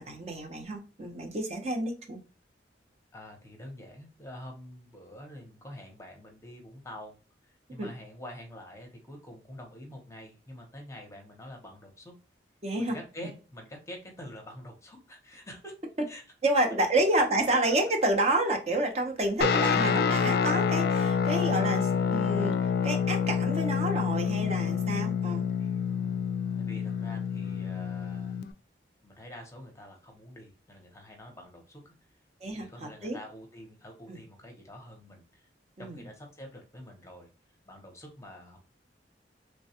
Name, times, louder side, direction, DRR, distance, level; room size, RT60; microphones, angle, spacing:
voice 1, 0.0-2.2 7.8-7.9 12.6-13.0 16.4-22.6 22.8-25.4 32.4-33.2 34.1-34.2 35.8-36.0, right 1 dB, 35° right, 0.6 m, -29 dB
voice 2, 3.1-7.2 7.5-12.1 12.8-15.7 16.1-16.2 17.1-17.2 17.5-17.7 26.6-28.4 29.0-31.8 32.5-35.5 35.8-37.3 37.7-38.6, left 1 dB, 15° left, 0.7 m, -46 dB
Guitar, 19.4-28.5, left 6 dB, 55° left, 0.3 m, -27 dB
3.2 x 2.2 x 2.7 m
head